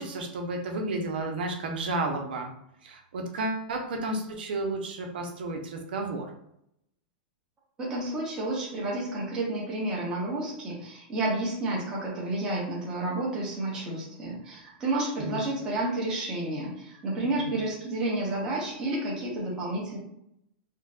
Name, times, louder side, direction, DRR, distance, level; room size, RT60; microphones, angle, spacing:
voice 1, 0.0-2.5 2.8-6.3 15.2-15.4 17.4-17.5, right 2 dB, 80° right, 3 dB, 0.7 m, -32 dB
voice 2, 7.8-20.0, right 2 dB, 15° right, -5 dB, 0.9 m, -30 dB
3.9 x 2.2 x 2.4 m, 0.77 s
supercardioid pair, 165°, 5 cm